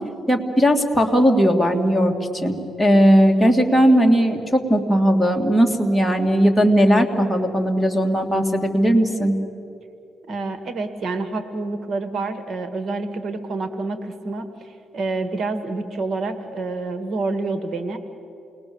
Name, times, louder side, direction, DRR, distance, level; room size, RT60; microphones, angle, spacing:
voice 1, 0.3-9.3, equal, ahead, 1 dB, 2.5 m, -18 dB
voice 2, 10.3-18.0, right 3 dB, 55° right, 9 dB, 1.7 m, -28 dB
28.5 x 21.0 x 7.1 m, 2.8 s
cardioid pair, 90°, 0 cm